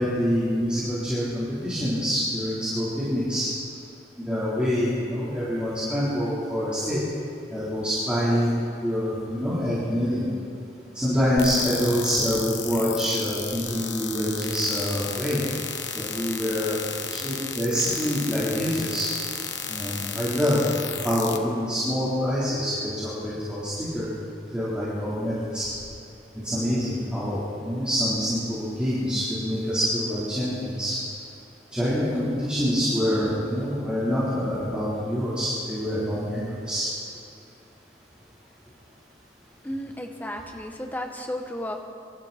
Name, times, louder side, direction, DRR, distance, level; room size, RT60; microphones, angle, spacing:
voice 1, 0.0-3.5 4.2-7.0 7.5-10.3 10.9-15.4 15.9-19.1 19.7-20.7 21.0-24.1 24.5-25.7 26.4-31.0 31.7-36.9, equal, 5° right, -11 dB, 3.9 m, -26 dB
sound 1, 11.4-21.4, left 7 dB, 85° left, 1.2 m, -33 dB
voice 2, 39.6-41.8, left 1 dB, 10° left, 3 dB, 1.2 m, -33 dB
25.0 x 13.0 x 4.3 m, 2.7 s
head